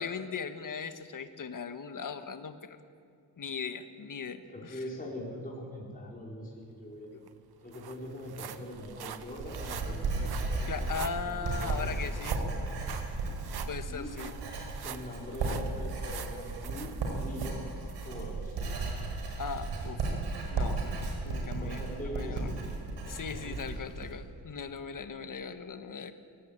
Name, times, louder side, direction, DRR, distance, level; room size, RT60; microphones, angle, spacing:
voice 1, 0.0-2.8 3.4-4.8 7.1-7.2 10.7-12.4 13.7-14.3 19.4-20.0 20.5-22.5 23.1-26.1, left 6 dB, 50° left, 9 dB, 1.5 m, -39 dB
voice 2, 4.5-12.7 13.8-14.3 14.8-18.6 21.5-22.6 23.0-23.8, left 1 dB, 20° left, -4 dB, 4.9 m, -43 dB
sound 1, 6.9-7.0 7.3-18.1 18.6-18.8 19.3-19.4, right 9 dB, 65° right, 1.1 m, -46 dB
Writing, 8.7-24.1, right 3 dB, 90° right, 5.5 m, -35 dB
22.5 x 17.5 x 8.9 m, 2.3 s
cardioid pair, 110°, 40 cm